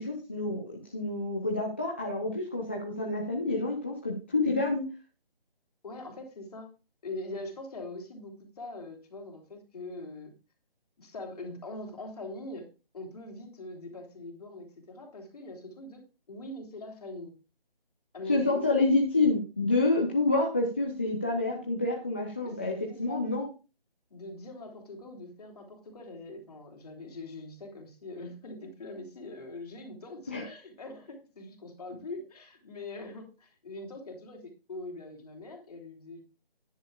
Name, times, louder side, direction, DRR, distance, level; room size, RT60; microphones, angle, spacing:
voice 1, 0.0-4.8 18.3-23.5 30.3-30.4, left 2 dB, 10° left, -2 dB, 0.6 m, -28 dB
voice 2, 5.8-6.7 7.0-10.3 11.0-17.3 18.1-18.6 22.4-23.2 24.1-36.2, left 2 dB, 40° left, 3 dB, 3.1 m, -43 dB
13.5 x 10.0 x 2.4 m, 0.32 s
figure-of-eight pair, 155°, 30 cm